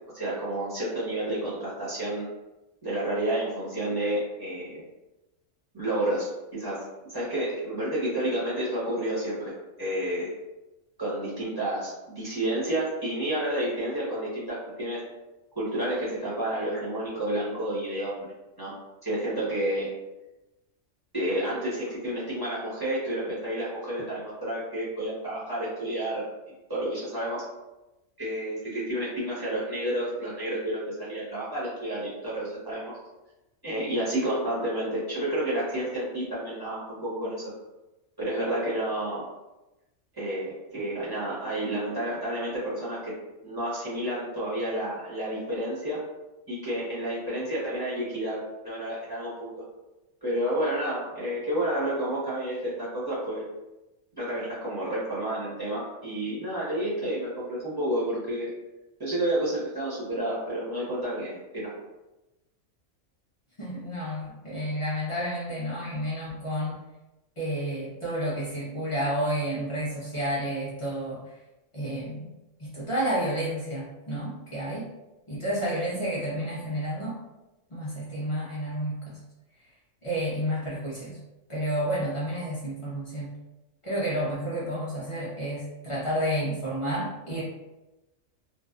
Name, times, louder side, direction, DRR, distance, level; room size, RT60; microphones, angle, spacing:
voice 1, 0.1-2.3 2.8-4.8 5.7-9.5 9.8-10.3 11.0-15.0 15.5-18.3 18.6-18.7 19.0-19.9 21.1-26.2 26.7-27.4 28.2-32.9 33.6-37.5 38.2-39.3 40.2-43.1 43.4-46.0 46.5-49.5 50.2-53.5 54.2-58.5 59.0-61.7, right 1 dB, 20° right, -9 dB, 0.8 m, -30 dB
voice 2, 63.6-66.8 67.4-71.2 71.7-72.3 72.6-74.9 75.3-77.1 77.7-79.2 80.0-81.2 81.5-83.3 83.8-87.4, equal, 55° left, -7 dB, 0.3 m, -30 dB
2.5 x 2.2 x 2.4 m, 1.0 s
omnidirectional pair, 1.3 m